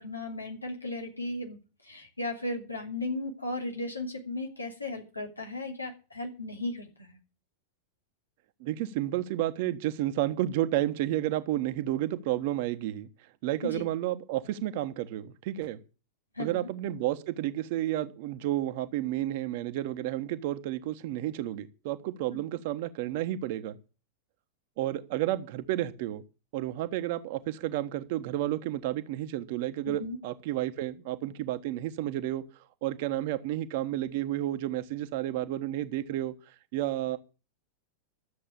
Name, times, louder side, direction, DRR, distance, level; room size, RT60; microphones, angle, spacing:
voice 1, 0.0-1.6 1.8-7.2 13.6-13.8 16.3-16.7 22.3-22.4 29.8-30.2, left 2 dB, 85° left, 2.9 m, -36 dB
voice 2, 8.6-13.1 13.4-15.8 16.4-23.8 24.8-26.2 26.5-32.4 32.8-36.3 36.7-37.2, right 14 dB, 50° right, 1.2 m, -31 dB
13.0 x 7.7 x 8.5 m
figure-of-eight pair, 90°, 0 cm